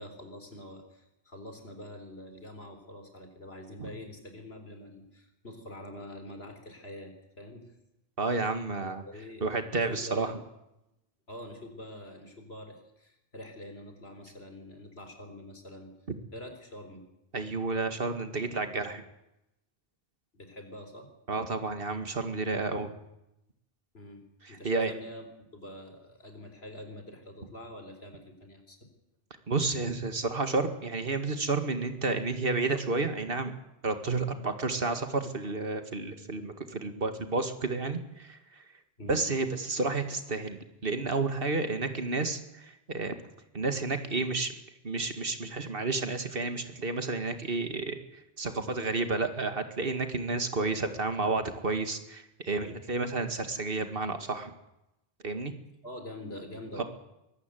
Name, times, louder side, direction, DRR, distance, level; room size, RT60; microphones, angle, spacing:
voice 1, 0.0-7.7 8.3-8.4 8.8-10.4 11.3-15.9 16.3-17.0 20.3-21.1 23.9-25.3 25.5-28.9 39.0-39.2 55.8-56.8, left 1 dB, 75° left, 6 dB, 4.4 m, -45 dB
voice 2, 8.2-9.0 9.4-10.3 17.3-19.0 21.3-22.9 24.4-24.9 29.5-33.5 33.8-38.6 39.1-43.2 43.5-44.5 44.8-48.0 48.4-54.5 55.2-55.5 56.8-56.9, right 3 dB, 60° right, 8 dB, 2.3 m, -31 dB
23.5 x 15.0 x 9.3 m, 0.88 s
omnidirectional pair, 1.1 m